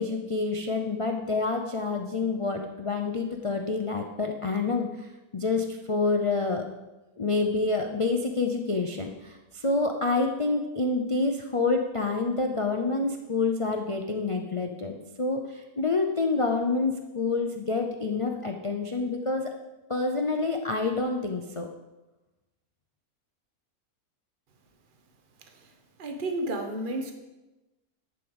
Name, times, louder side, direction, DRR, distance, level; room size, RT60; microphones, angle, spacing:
voice 1, 0.0-5.1 5.3-6.7 7.2-19.5 19.9-21.7, left 3 dB, 35° left, 3 dB, 0.5 m, -28 dB
voice 2, 26.0-27.1, right 1 dB, 35° right, 4 dB, 1.3 m, -31 dB
11.0 x 5.0 x 8.0 m, 1.1 s
omnidirectional pair, 1.6 m